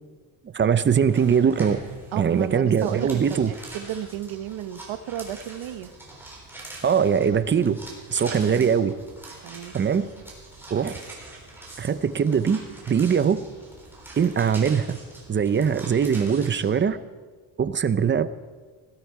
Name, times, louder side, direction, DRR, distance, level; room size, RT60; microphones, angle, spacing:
voice 1, 0.4-1.8 2.2-3.5 6.8-7.8 8.1-9.0 9.7-10.1 10.7-11.0 11.8-12.6 12.9-13.4 14.2-15.0 15.3-17.0 17.6-18.3, right 7 dB, 25° right, 13 dB, 0.5 m, -21 dB
sound 1, 1.1-16.8, right 2 dB, 5° right, 3.9 m, -43 dB
voice 2, 2.1-5.9 8.3-8.7 9.4-9.7, right 11 dB, 80° right, 11 dB, 1.1 m, -33 dB
20.0 x 15.5 x 4.7 m, 1.4 s
cardioid pair, 175°, 47 cm